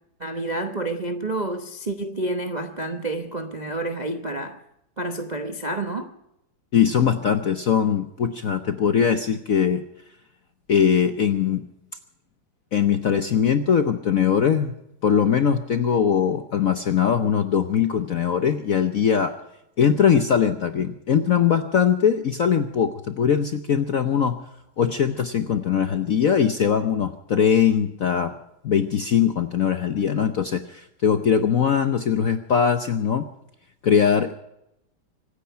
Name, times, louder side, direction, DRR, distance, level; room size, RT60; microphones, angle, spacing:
voice 1, 0.2-4.6 5.0-6.1, right 2 dB, 40° right, 0.6 m, -29 dB
voice 2, 6.7-9.8 10.7-11.6 12.7-14.7 15.0-19.4 19.8-24.4 24.8-28.3 28.6-33.3 33.8-34.3, left 7 dB, 60° left, 0.9 m, -21 dB
25.0 x 9.8 x 5.7 m
omnidirectional pair, 2.4 m